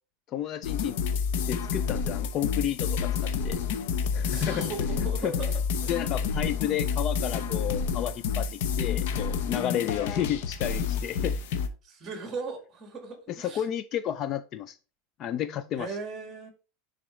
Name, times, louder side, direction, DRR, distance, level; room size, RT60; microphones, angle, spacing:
voice 1, 0.3-0.9 1.4-3.6 4.1-4.7 5.0-5.3 5.9-11.4 13.3-14.8 15.2-16.0, left 10 dB, 30° left, 0.3 m, -32 dB
sound 1, 0.6-11.7, left 6 dB, 65° left, 0.8 m, -29 dB
voice 2, 4.3-6.1 11.8-13.6 15.8-16.5, right 4 dB, 20° right, 1.8 m, -38 dB
10.0 x 3.8 x 3.2 m
supercardioid pair, 165°, 0 cm